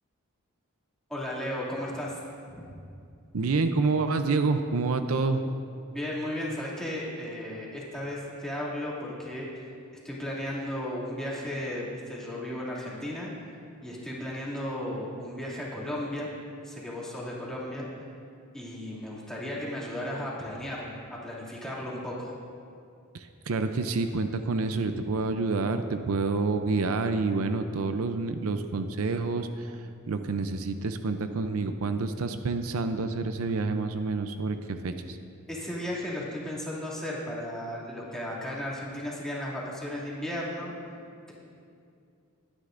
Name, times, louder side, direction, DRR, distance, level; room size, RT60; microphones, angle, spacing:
voice 1, 1.1-2.2 2.5-2.7 5.9-9.5 10.0-13.3 13.8-16.3 16.6-17.9 18.5-22.3 35.5-40.7, left 1 dB, 5° left, -7 dB, 2.4 m, -35 dB
voice 2, 3.3-5.4 23.1-35.2, right 3 dB, 75° right, 8 dB, 0.5 m, -28 dB
21.0 x 9.9 x 2.5 m, 2.5 s
head